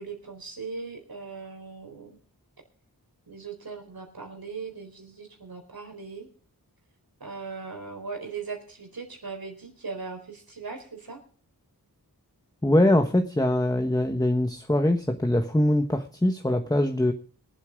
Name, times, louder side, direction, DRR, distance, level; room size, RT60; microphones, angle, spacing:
voice 1, 0.0-2.2 3.3-6.3 7.2-11.2, right 4 dB, 70° right, 3 dB, 4.3 m, -39 dB
voice 2, 12.6-17.1, left 1 dB, 10° left, 6 dB, 1.2 m, -23 dB
24.0 x 8.2 x 5.0 m, 0.42 s
wide cardioid pair, 80°, 38 cm